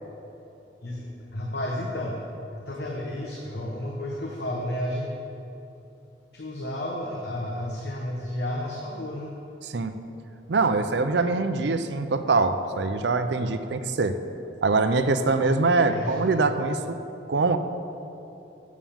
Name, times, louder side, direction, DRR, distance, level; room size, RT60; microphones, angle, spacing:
voice 1, 0.8-2.2 2.5-5.1 6.3-9.3 15.9-16.2, left 1 dB, 60° left, -2 dB, 1.1 m, -32 dB
voice 2, 9.6-9.9 10.5-14.2 14.6-17.0 17.3-17.6, right 3 dB, 65° right, 9 dB, 0.5 m, -23 dB
9.2 x 7.3 x 7.1 m, 2.9 s
head